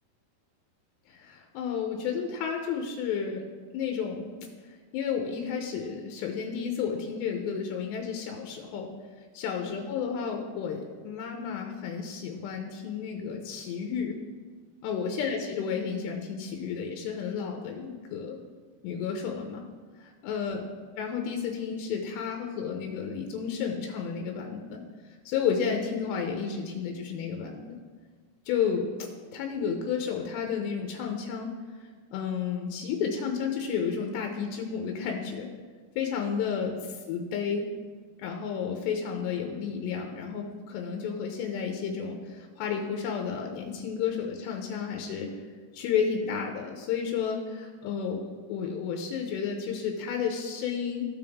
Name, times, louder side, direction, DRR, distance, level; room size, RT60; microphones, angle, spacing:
voice 1, 1.1-3.5 3.7-4.4 4.6-8.9 9.3-14.1 14.8-18.4 18.8-19.6 20.0-20.6 21.0-24.8 25.3-27.8 28.5-31.5 31.8-35.5 36.0-37.7 38.2-45.3 45.7-51.1, left 6 dB, 90° left, 2 dB, 2.9 m, -32 dB
15.0 x 5.2 x 3.5 m, 1.5 s
omnidirectional pair, 4.8 m